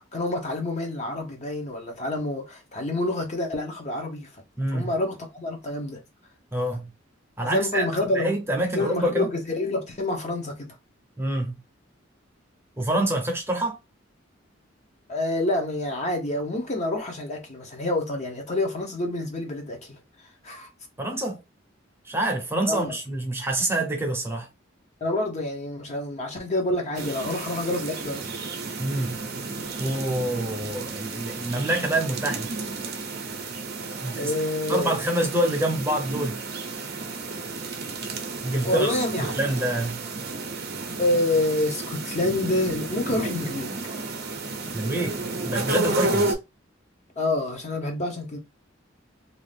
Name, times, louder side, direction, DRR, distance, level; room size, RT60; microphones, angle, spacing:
voice 1, 0.0-4.3 4.7-6.0 7.4-8.3 8.7-10.7 15.1-20.0 20.4-20.7 22.7-22.9 25.0-28.3 34.2-34.9 38.6-39.3 41.0-44.0 47.2-48.4, left 2 dB, 35° left, 0.8 m, -27 dB
voice 2, 4.6-4.9 6.5-6.9 7.4-7.9 8.1-9.3 11.2-11.6 12.8-13.8 21.0-21.4 22.0-24.5 28.8-29.2 29.8-32.5 34.0-34.3 34.7-36.4 38.4-38.9 39.2-40.0 44.7-46.4, right 1 dB, 10° right, 0.7 m, -26 dB
sound 1, 26.9-46.3, right 3 dB, 55° right, 0.6 m, -32 dB
2.6 x 2.4 x 3.3 m
head